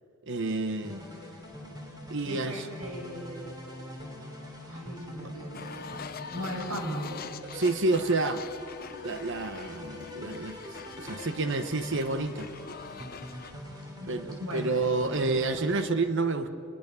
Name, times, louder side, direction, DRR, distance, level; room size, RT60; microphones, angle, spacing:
voice 1, 0.3-1.1 2.1-2.7 7.5-8.5 9.0-10.6 11.0-12.5 14.1-16.5, right 3 dB, 55° right, 10 dB, 1.0 m, -29 dB
sound 1, 0.8-15.9, left 1 dB, 20° right, 3.4 m, -44 dB
voice 2, 2.2-3.5 4.6-7.1 13.8-14.1 14.4-14.7, equal, 85° right, 1 dB, 6.3 m, -38 dB
sound 2, 5.5-13.5, left 6 dB, 40° left, 0.7 m, -44 dB
29.0 x 21.5 x 7.0 m, 2.6 s
head